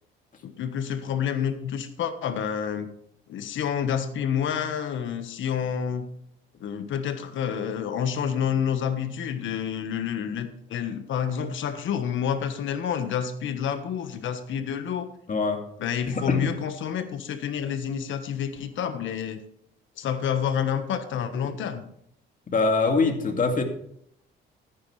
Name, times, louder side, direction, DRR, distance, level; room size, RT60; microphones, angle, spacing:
voice 1, 0.4-2.9 3.3-6.1 6.6-15.1 15.8-19.4 20.0-21.8, left 8 dB, 75° left, 9 dB, 1.4 m, -29 dB
voice 2, 15.3-15.6 16.1-16.4 22.5-23.6, left 3 dB, 40° left, 4 dB, 2.3 m, -23 dB
14.5 x 9.7 x 3.3 m, 0.69 s
cardioid pair, 90°, 20 cm